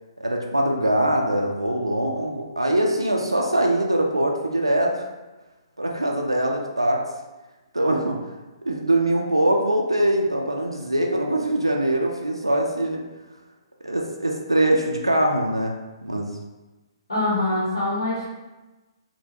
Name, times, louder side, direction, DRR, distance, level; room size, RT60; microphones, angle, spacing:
voice 1, 0.2-5.0 5.8-7.1 7.7-8.2 8.7-13.0 13.8-15.8 16.0-16.3, right 1 dB, 90° right, 0 dB, 0.4 m, -22 dB
voice 2, 17.1-18.3, left 2 dB, 80° left, -8 dB, 1.0 m, -24 dB
3.5 x 2.2 x 2.8 m, 1.1 s
figure-of-eight pair, 125°, 3 cm